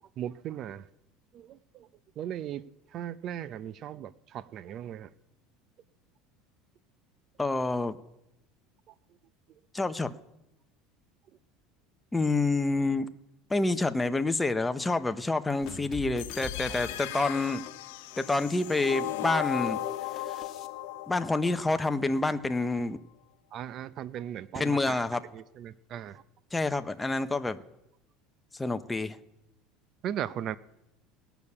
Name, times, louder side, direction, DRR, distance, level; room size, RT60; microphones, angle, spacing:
voice 1, 0.2-0.9 1.3-1.9 2.2-2.6 2.9-5.1 8.9-9.0 23.5-25.0 25.3-26.2 30.0-30.6, right 10 dB, 40° right, 16 dB, 0.5 m, -37 dB
voice 2, 7.4-8.0 9.7-10.1 12.1-13.1 13.5-17.6 18.2-19.8 20.1-20.3 21.1-23.0 24.5-25.2 26.5-27.6 28.5-29.2, left 2 dB, 10° left, 9 dB, 0.7 m, -28 dB
sound 1, 15.6-20.7, left 8 dB, 45° left, 1.1 m, -45 dB
sound 2, 16.2-22.2, left 14 dB, 85° left, 0.9 m, -37 dB
18.0 x 7.0 x 9.6 m, 0.87 s
cardioid pair, 150°, 0 cm